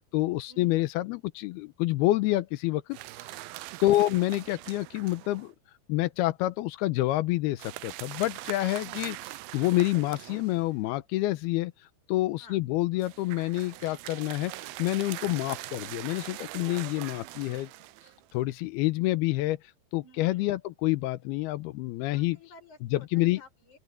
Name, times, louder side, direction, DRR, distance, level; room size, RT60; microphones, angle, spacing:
voice 1, 0.1-3.0 3.8-5.5 5.9-9.2 9.5-11.7 12.1-14.5 14.8-17.7 18.3-19.6 19.9-22.4 22.9-23.4, left 17 dB, 85° left, 2.7 m, -27 dB
sound 1, 2.9-5.5 7.6-10.8 13.0-18.3, right 17 dB, 80° right, 2.4 m, -42 dB
voice 2, 20.0-20.6 22.0-23.8, left 2 dB, 50° left, 8.2 m, -54 dB
open air
omnidirectional pair, 4.5 m